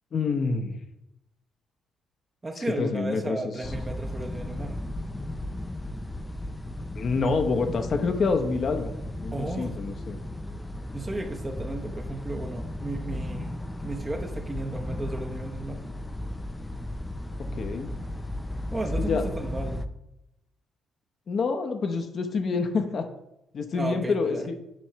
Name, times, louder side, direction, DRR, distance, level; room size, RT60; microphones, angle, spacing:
voice 1, 0.1-0.8 2.6-3.4 6.9-10.2 17.5-17.9 19.0-19.2 21.3-23.1 23.5-24.5, left 4 dB, 45° left, 6 dB, 0.7 m, -27 dB
voice 2, 2.4-4.8 9.3-9.7 10.9-15.8 18.7-19.9 23.7-24.5, right 2 dB, 20° right, 3 dB, 0.8 m, -34 dB
sound 1, 3.6-19.8, left 1 dB, 10° left, 0.3 m, -35 dB
7.3 x 3.1 x 5.6 m, 0.83 s
cardioid pair, 140°, 0 cm